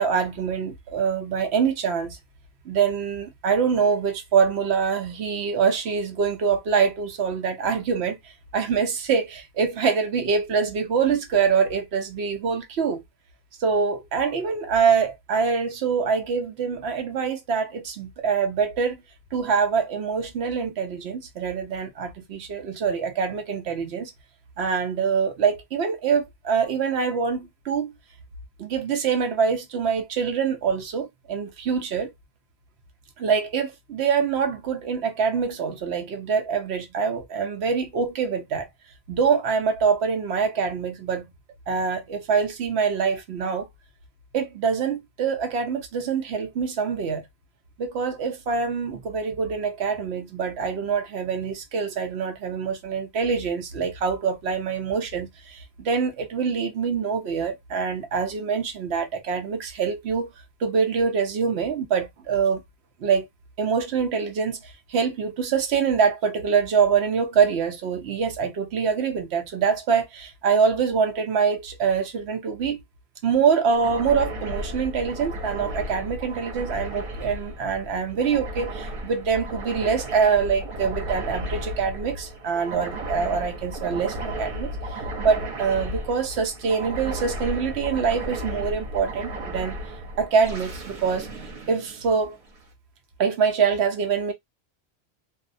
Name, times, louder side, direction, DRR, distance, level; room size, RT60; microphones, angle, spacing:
voice 1, 0.0-2.2 2.6-13.0 13.6-19.0 19.3-24.1 24.6-27.9 28.6-32.1 33.2-38.7 39.1-41.3 41.7-43.7 44.3-47.3 47.8-60.3 60.6-62.6 63.0-63.3 63.6-72.8 73.2-84.8 85.2-89.8 90.2-91.3 91.7-92.4 93.2-94.3, right 6 dB, 85° right, 0.9 m, -24 dB
sound 1, 73.7-92.6, right 1 dB, 55° right, 1.1 m, -34 dB
2.6 x 2.0 x 2.5 m
omnidirectional pair, 1.1 m